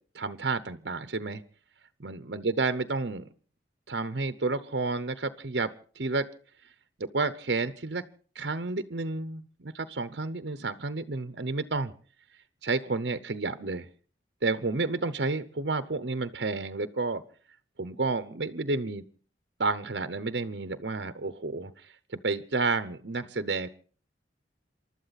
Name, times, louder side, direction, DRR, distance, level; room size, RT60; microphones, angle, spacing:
voice 1, 0.1-1.4 2.0-3.3 3.9-6.3 7.0-8.0 8.3-11.9 12.6-13.9 14.4-17.2 17.8-19.0 19.6-23.7, right 3 dB, 60° right, 11 dB, 0.8 m, -31 dB
28.0 x 12.5 x 4.1 m, 0.42 s
head